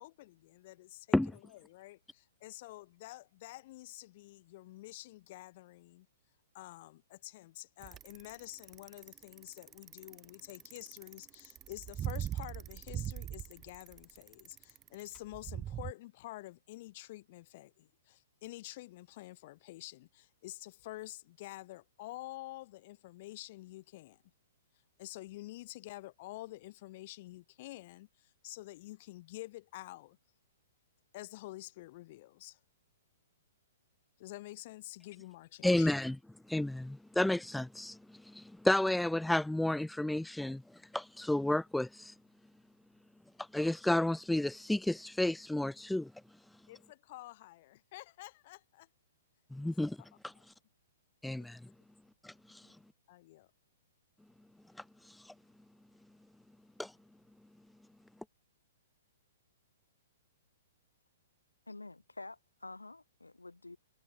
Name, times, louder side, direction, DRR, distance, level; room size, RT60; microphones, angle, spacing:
voice 1, 0.0-6.1 6.5-24.2 25.0-30.2 31.1-32.6 34.2-35.9 46.7-48.9 49.8-49.9 50.2-50.4 51.4-51.5 52.6-52.8 53.1-53.5, left 18 dB, 45° left, 2.1 m, -49 dB
Bicycle, 7.8-15.9, right 10 dB, 20° right, 0.9 m, -41 dB
voice 2, 35.6-36.1 36.5-38.0 38.3-40.6 40.9-42.1 43.5-46.1 49.5-50.0 50.2-50.3 51.2-51.6 52.2-52.3 56.8-56.9, left 1 dB, 5° left, 0.5 m, -31 dB
voice 3, 61.7-63.8, left 2 dB, 90° left, 3.6 m, -48 dB
figure-of-eight pair, 115°, 0 cm